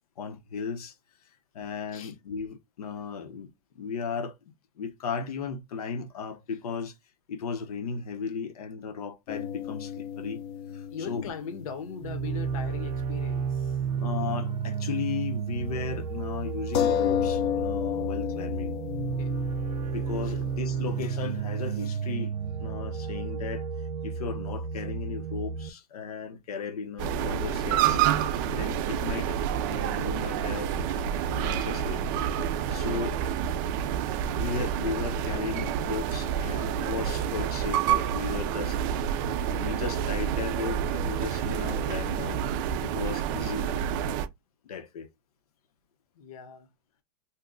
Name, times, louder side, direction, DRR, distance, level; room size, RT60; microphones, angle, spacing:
voice 1, 0.2-0.9 1.5-4.4 4.8-6.9 7.3-10.4 10.7-11.3 14.0-18.7 19.9-23.7 24.0-28.0 28.5-32.0 32.7-33.2 34.4-39.1 39.5-42.4 42.8-43.7 44.6-45.1, left 5 dB, 85° left, 0.9 m, -36 dB
sound 1, 9.3-13.2 13.4-13.5 16.7-22.0, left 9 dB, 40° left, 0.6 m, -33 dB
voice 2, 10.9-13.8 19.2-19.4 20.2-20.3 36.4-36.6 46.1-46.7, left 6 dB, 65° left, 0.9 m, -40 dB
sound 2, 12.0-25.7, right 6 dB, 85° right, 0.5 m, -32 dB
sound 3, 27.0-44.3, right 9 dB, 35° right, 0.4 m, -28 dB
2.8 x 2.2 x 3.7 m
supercardioid pair, 150°, 19 cm